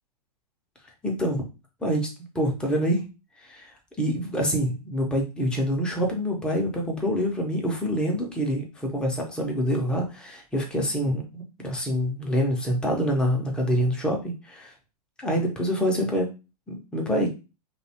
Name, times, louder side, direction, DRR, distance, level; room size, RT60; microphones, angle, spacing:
voice 1, 1.0-1.5 1.8-2.1 2.3-3.0 3.4-3.7 4.0-14.7 15.2-16.3 16.7-17.3, equal, 5° left, 0 dB, 0.4 m, -26 dB
2.6 x 2.1 x 2.7 m, 0.29 s
hypercardioid pair, 140°, 20 cm